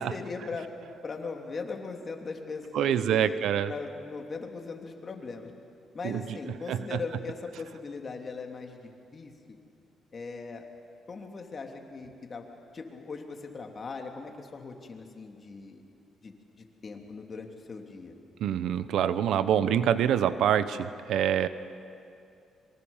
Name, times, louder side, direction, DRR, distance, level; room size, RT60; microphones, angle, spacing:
voice 1, 0.0-5.5 5.9-9.6 10.1-10.6 11.1-12.4 12.7-15.8 16.2-16.3 16.8-18.2, left 4 dB, 40° left, 3 dB, 3.1 m, -39 dB
voice 2, 2.7-3.7 6.0-6.2 6.7-7.0 18.4-21.5, right 9 dB, 75° right, 13 dB, 0.9 m, -26 dB
25.5 x 23.5 x 7.3 m, 2.5 s
cardioid pair, 90°, 0 cm